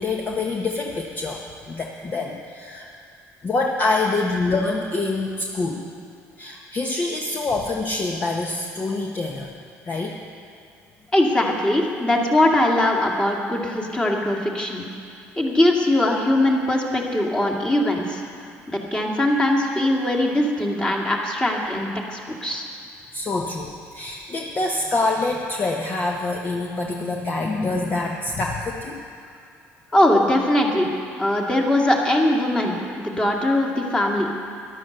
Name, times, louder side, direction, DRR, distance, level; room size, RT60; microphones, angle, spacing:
voice 1, 0.0-2.9 3.4-5.9 6.4-9.5 9.8-10.2 23.1-29.1, left 3 dB, 35° left, 0 dB, 1.1 m, -26 dB
voice 2, 11.1-14.9 15.4-18.2 18.7-22.7 29.9-30.9 31.2-34.3, left 1 dB, 15° left, -1 dB, 2.3 m, -21 dB
13.5 x 11.5 x 6.7 m, 2.3 s
cardioid pair, 100°, 5 cm